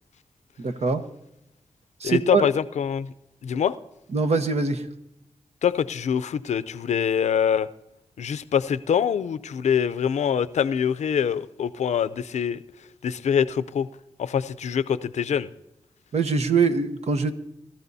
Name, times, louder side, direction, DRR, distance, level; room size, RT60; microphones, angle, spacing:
voice 1, 0.6-1.0 2.0-2.5 4.1-4.9 16.1-17.3, right 4 dB, 70° right, 8 dB, 1.1 m, -23 dB
voice 2, 2.0-3.1 3.4-3.7 5.6-7.7 8.2-12.6 13.0-13.9 14.2-15.5, left 8 dB, 85° left, 15 dB, 0.5 m, -24 dB
22.5 x 13.5 x 2.7 m, 0.88 s
cardioid pair, 55°, 12 cm